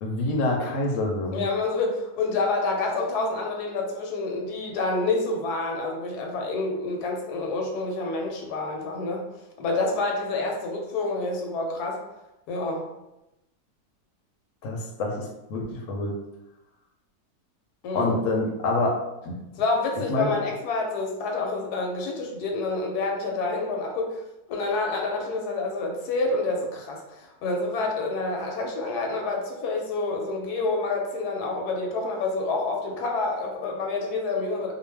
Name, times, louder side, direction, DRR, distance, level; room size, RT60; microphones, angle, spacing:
voice 1, 0.0-1.4 14.6-16.1 17.9-19.0 19.3-19.4 20.1-20.3, left 2 dB, 65° left, 0 dB, 0.9 m, -26 dB
voice 2, 1.3-9.3 9.6-12.0 12.5-12.9 17.8-18.2 19.5-24.2 24.5-34.7, left 3 dB, 85° left, 1 dB, 1.1 m, -28 dB
2.5 x 2.1 x 3.2 m, 0.93 s
omnidirectional pair, 1.7 m